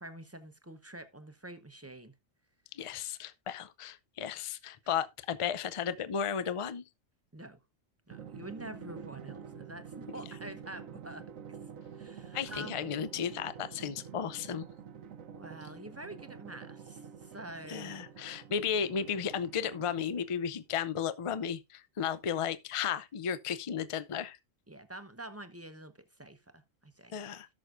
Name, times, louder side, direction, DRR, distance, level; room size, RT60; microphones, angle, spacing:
voice 1, 0.0-2.1 7.3-7.6 8.1-11.6 11.9-12.8 15.3-18.0 24.7-25.9 26.2-27.2, right 1 dB, 15° right, 0.7 m, -47 dB
voice 2, 2.7-6.8 12.3-14.6 17.7-24.4 27.1-27.5, left 8 dB, 45° left, 0.4 m, -34 dB
Drum, 8.1-20.5, right 7 dB, 90° right, 1.2 m, -48 dB
17.5 x 6.3 x 2.5 m
omnidirectional pair, 1.4 m